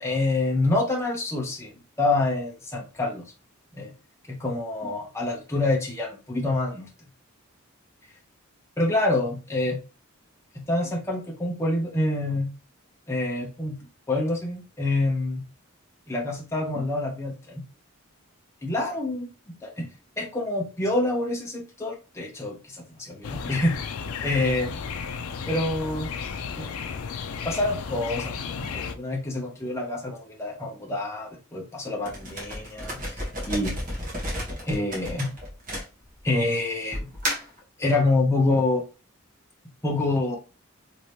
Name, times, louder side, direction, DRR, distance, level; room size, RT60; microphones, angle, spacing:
voice 1, 0.0-1.7 2.0-3.3 3.7-3.9 4.3-6.9 8.8-9.8 10.5-12.5 13.1-13.8 14.1-15.4 16.1-17.7 18.6-19.9 20.2-23.8 24.2-24.7 25.5-26.1 26.5-26.7 27.4-33.8 34.6-35.3 36.2-37.1 37.8-38.8 39.8-40.4, left 2 dB, 15° left, -1 dB, 0.6 m, -27 dB
sound 1, 23.2-29.0, left 6 dB, 75° left, 0.4 m, -33 dB
sound 2, 32.0-36.4 36.9-37.6, equal, 40° right, 1.3 m, -32 dB
3.1 x 2.7 x 3.1 m, 0.33 s
head